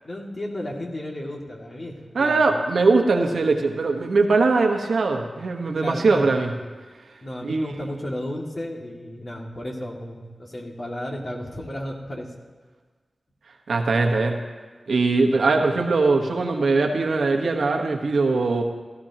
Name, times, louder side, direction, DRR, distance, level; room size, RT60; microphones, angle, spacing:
voice 1, 0.0-2.5 5.8-6.3 7.2-12.3, left 1 dB, 45° left, -1 dB, 2.2 m, -33 dB
voice 2, 2.1-6.5 7.4-7.9 13.7-14.4 14.9-18.6, right 3 dB, 85° right, 3 dB, 1.2 m, -21 dB
16.5 x 14.0 x 2.9 m, 1.4 s
wide cardioid pair, 70°, 0 cm